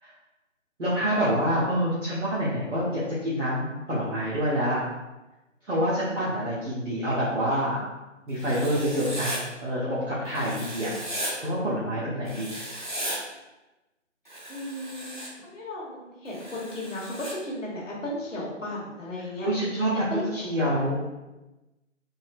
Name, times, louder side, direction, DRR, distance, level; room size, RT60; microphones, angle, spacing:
voice 1, 0.8-4.8 5.7-7.8 8.3-9.3 9.6-10.9 11.4-12.6 19.4-20.9, equal, 75° right, -10 dB, 1.1 m, -27 dB
Writing, 8.4-9.4 10.3-11.3 12.3-13.2 14.3-15.3 16.3-17.3, right 1 dB, 40° right, 0.5 m, -36 dB
voice 2, 14.5-19.5 20.1-20.8, left 1 dB, 75° left, -5 dB, 1.3 m, -35 dB
4.0 x 2.0 x 2.4 m, 1.0 s
figure-of-eight pair, 165°, 38 cm